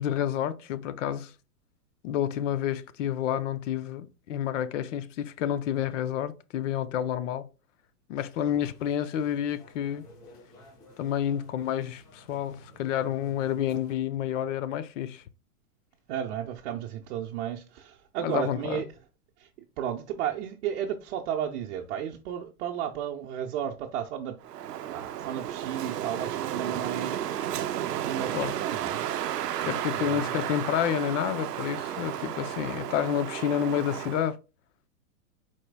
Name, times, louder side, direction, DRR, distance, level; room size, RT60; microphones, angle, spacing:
voice 1, 0.0-1.3 2.0-7.5 8.1-10.1 11.0-15.2 18.2-18.8 28.3-28.5 29.6-34.4, left 10 dB, 55° left, 0.6 m, -29 dB
sound 1, 8.4-13.9, left 1 dB, 80° left, 1.9 m, -54 dB
voice 2, 16.1-18.9 19.4-19.5 19.8-24.4 24.9-27.2 28.0-29.0 29.6-30.3, right 9 dB, 50° right, 0.6 m, -33 dB
Wind, 24.4-34.3, right 11 dB, 90° right, 0.6 m, -33 dB
4.5 x 4.4 x 2.2 m
hypercardioid pair, 125°, 46 cm